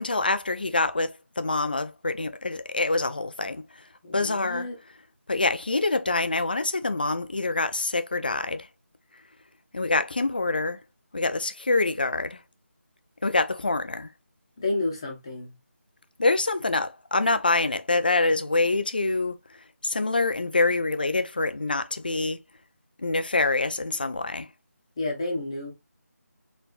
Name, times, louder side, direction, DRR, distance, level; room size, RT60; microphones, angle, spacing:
voice 1, 0.0-3.7 4.1-4.7 5.3-8.7 9.7-10.8 11.1-12.4 13.2-14.1 16.2-22.4 23.0-24.5, left 3 dB, 35° left, 0.4 m, -26 dB
voice 2, 4.0-4.7 14.6-15.5 25.0-25.7, left 2 dB, 20° left, 1.0 m, -30 dB
4.2 x 3.3 x 2.3 m
figure-of-eight pair, 175°, 9 cm